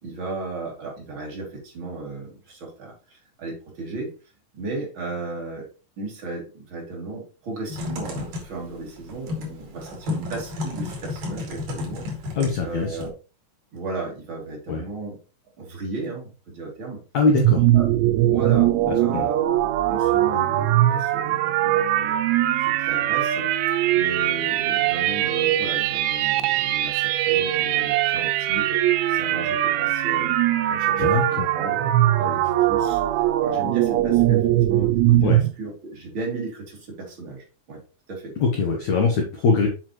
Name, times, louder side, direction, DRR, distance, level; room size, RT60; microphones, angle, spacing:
voice 1, 0.0-4.1 4.5-5.7 6.0-12.0 12.6-13.1 13.7-15.2 15.6-17.0 17.7-17.9 18.2-18.7 19.0-19.6 19.9-22.2 22.6-23.5 23.9-28.8 29.1-30.3 30.7-31.9 32.2-37.8 38.1-38.4, right 3 dB, 30° right, -2 dB, 2.9 m, -35 dB
Typing, 7.7-13.1, left 3 dB, 55° right, 3.7 m, -33 dB
voice 2, 12.3-13.0 14.7-14.8 17.1-17.6 18.9-19.3 31.0-31.5 35.2-35.4 38.4-39.7, left 4 dB, 90° left, 1 dB, 1.5 m, -22 dB
sound 1, 17.3-35.5, right 13 dB, 85° right, 2.8 m, -21 dB
7.8 x 6.9 x 3.1 m, 0.33 s
omnidirectional pair, 5.2 m